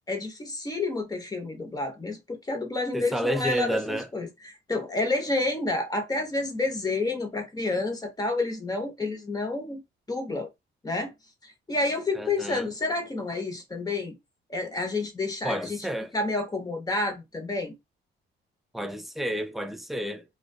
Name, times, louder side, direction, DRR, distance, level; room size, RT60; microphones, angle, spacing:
voice 1, 0.1-9.8 10.1-10.5 10.8-11.1 11.4-14.2 14.5-15.9 16.1-17.7, left 2 dB, 20° left, 0.9 m, -29 dB
voice 2, 2.9-4.1 12.2-12.7 15.4-16.1 18.7-20.2, equal, ahead, 0.4 m, -30 dB
2.4 x 2.3 x 2.3 m
cardioid pair, 90°, 20 cm